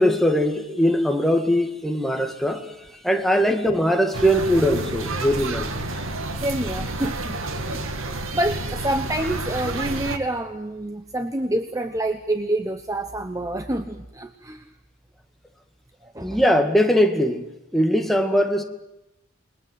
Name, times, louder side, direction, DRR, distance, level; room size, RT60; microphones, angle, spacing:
voice 1, 0.0-2.7 3.0-5.7 16.2-17.5 17.7-18.6, equal, ahead, 2.0 m, -20 dB
sound 1, 4.1-10.2, right 2 dB, 85° right, 2.2 m, -30 dB
voice 2, 6.4-7.4 7.7-14.7 16.0-16.4, right 1 dB, 15° right, 0.9 m, -27 dB
29.5 x 21.5 x 7.9 m
head